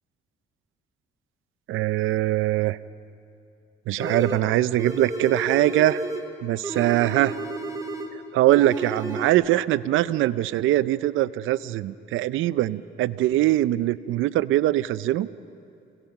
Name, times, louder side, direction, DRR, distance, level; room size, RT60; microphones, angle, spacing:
voice 1, 1.7-2.8 3.9-6.0 6.4-7.4 8.3-15.3, right 14 dB, 85° right, 16 dB, 0.6 m, -22 dB
sound 1, 4.0-4.5 4.8-6.3 6.6-8.1 8.5-9.3, right 2 dB, 15° right, 3.0 m, -31 dB
29.0 x 17.5 x 5.9 m, 2.6 s
cardioid pair, 90°, 20 cm